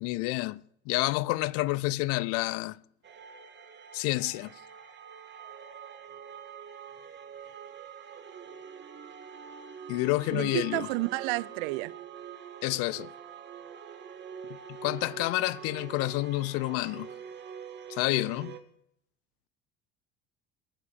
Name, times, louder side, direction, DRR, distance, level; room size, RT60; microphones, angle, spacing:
voice 1, 0.0-2.8 3.9-4.5 9.9-10.9 12.6-13.1 14.8-17.1 17.9-18.6, left 20 dB, 45° left, 0.5 m, -29 dB
sound 1, 3.0-18.6, right 7 dB, 35° right, 1.8 m, -45 dB
voice 2, 10.3-11.9, right 21 dB, 55° right, 0.6 m, -30 dB
20.5 x 8.3 x 7.0 m
figure-of-eight pair, 60°, 32 cm